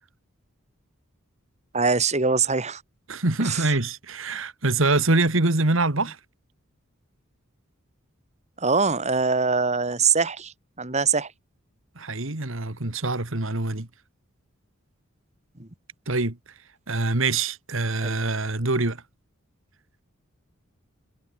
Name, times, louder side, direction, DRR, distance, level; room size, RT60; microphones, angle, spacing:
voice 1, 1.7-2.8 3.4-3.6 8.6-11.3 15.6-15.7 18.0-18.2, right 5 dB, 35° right, 2.1 m, -23 dB
voice 2, 3.1-6.2 12.0-13.9 16.1-16.4 16.9-19.0, right 2 dB, 65° right, 2.1 m, -24 dB
head